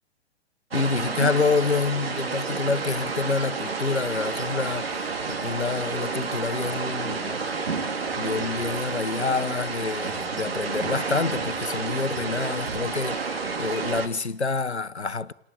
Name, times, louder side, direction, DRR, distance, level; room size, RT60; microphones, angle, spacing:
voice 1, 0.7-7.3 8.2-13.2 13.6-15.3, left 4 dB, 80° left, 1.1 m, -27 dB
sound 1, 0.7-14.1, right 4 dB, 60° right, 3.6 m, -30 dB
29.0 x 19.0 x 7.0 m
figure-of-eight pair, 120°, 33 cm